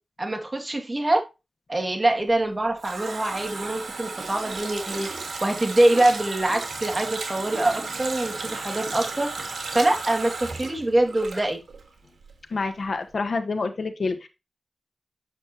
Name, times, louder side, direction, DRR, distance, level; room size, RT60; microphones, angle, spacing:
voice 1, 0.2-1.2 1.7-5.1 5.4-9.3 9.7-11.6, right 1 dB, 30° right, 2 dB, 2.3 m, -24 dB
Water tap faucet, 2.3-11.9 12.2-12.3, right 4 dB, 90° right, 1.7 m, -34 dB
voice 2, 12.5-14.3, left 4 dB, 70° left, 7 dB, 1.3 m, -27 dB
8.3 x 6.3 x 3.0 m, 0.26 s
cardioid pair, 60°, 0 cm